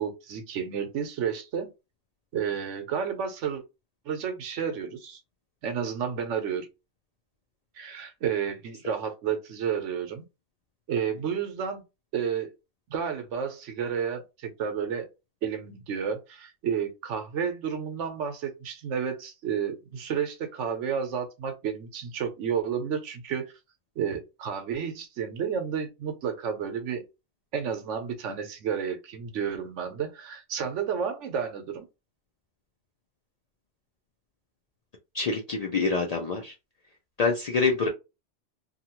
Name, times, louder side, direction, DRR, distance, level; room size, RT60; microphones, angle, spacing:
voice 1, 0.0-1.7 2.3-3.6 4.1-5.2 5.6-6.7 7.8-10.2 10.9-11.8 12.1-12.5 12.9-15.1 15.4-23.5 24.0-27.0 27.5-31.9, right 7 dB, 75° right, 1.0 m, -31 dB
voice 2, 35.1-36.5 37.2-37.9, left 4 dB, 75° left, 0.3 m, -26 dB
2.7 x 2.4 x 2.9 m
omnidirectional pair, 1.3 m